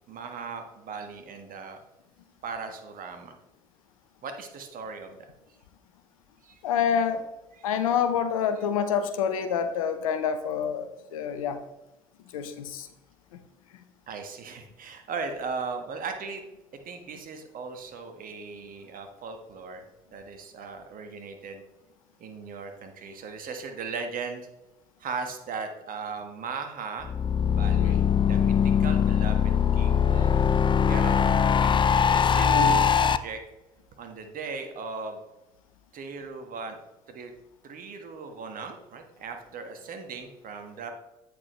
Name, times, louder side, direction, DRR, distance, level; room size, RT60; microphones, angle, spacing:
voice 1, 0.1-1.8 2.4-3.4 4.2-5.3 6.4-6.6 7.6-7.7 14.1-16.4 16.8-19.8 20.1-21.6 22.2-24.5 25.0-27.1 27.5-30.4 30.9-31.7 32.0-33.4 34.0-35.2 35.9-36.8 37.1-37.3 37.6-40.9, right 4 dB, 55° right, 6 dB, 1.5 m, -38 dB
voice 2, 6.6-7.2 7.6-11.6 12.3-12.9 13.3-13.4 27.8-28.0 32.4-32.8, left 7 dB, 85° left, 10 dB, 0.7 m, -27 dB
sound 1, 27.0-33.2, left 7 dB, 30° left, 0.5 m, -22 dB
8.8 x 6.7 x 3.1 m, 0.97 s
hypercardioid pair, 55°, 17 cm